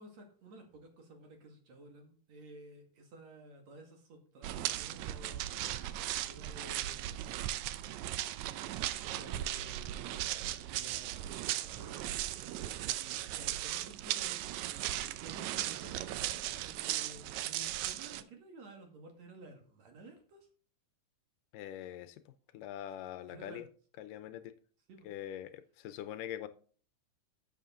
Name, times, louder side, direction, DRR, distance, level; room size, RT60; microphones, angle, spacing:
voice 1, 0.0-7.5 9.1-12.5 13.0-14.6 15.2-20.5 23.3-23.6 24.9-25.1, right 2 dB, 55° right, 3.0 m, -53 dB
sound 1, 4.4-18.2, right 13 dB, 80° right, 1.7 m, -37 dB
voice 2, 21.5-23.7 24.0-24.6 25.0-26.5, left 11 dB, 85° left, 2.3 m, -43 dB
11.5 x 7.5 x 3.8 m
omnidirectional pair, 3.9 m